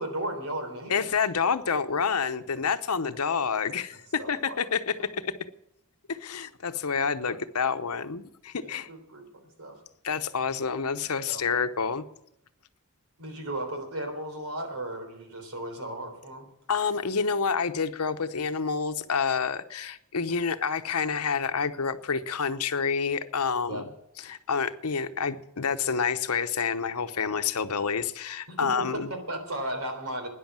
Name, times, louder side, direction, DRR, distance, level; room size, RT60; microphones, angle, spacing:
voice 1, 0.0-1.0 4.2-4.6 4.9-5.0 8.5-9.3 9.6-9.8 11.3-11.4 13.2-16.5 23.6-23.9 28.5-30.3, right 1 dB, 75° right, 3.7 m, -35 dB
voice 2, 0.9-5.4 6.1-8.9 10.0-12.1 16.7-23.8 24.2-29.1, left 5 dB, 90° left, 0.9 m, -28 dB
13.0 x 10.0 x 7.5 m
head